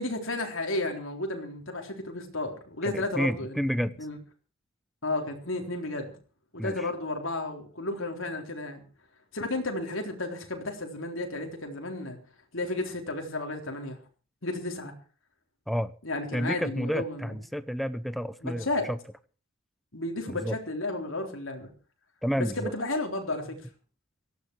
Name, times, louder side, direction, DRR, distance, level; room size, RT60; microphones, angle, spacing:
voice 1, 0.0-4.2 5.0-6.2 6.5-8.8 9.3-12.2 12.5-14.0 14.4-14.9 16.0-17.3 18.4-18.9 19.9-21.7 22.4-23.7, left 2 dB, 65° left, 3 dB, 3.8 m, -33 dB
voice 2, 2.8-3.9 6.6-6.9 15.7-15.9 16.3-19.0 20.3-20.6 22.2-22.7, equal, ahead, 13 dB, 0.8 m, -30 dB
18.0 x 14.5 x 4.7 m, 0.38 s
head